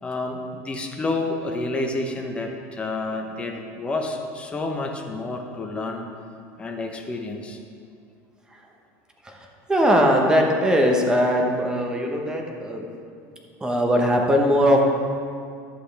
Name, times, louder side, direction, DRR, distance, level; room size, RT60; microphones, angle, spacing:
voice 1, 0.0-6.1 6.6-7.6, left 2 dB, 15° left, 2 dB, 0.8 m, -29 dB
voice 2, 9.7-12.9 13.6-14.8, equal, 10° right, 1 dB, 1.1 m, -20 dB
11.5 x 7.7 x 3.4 m, 2.3 s
supercardioid pair, 140°, 7 cm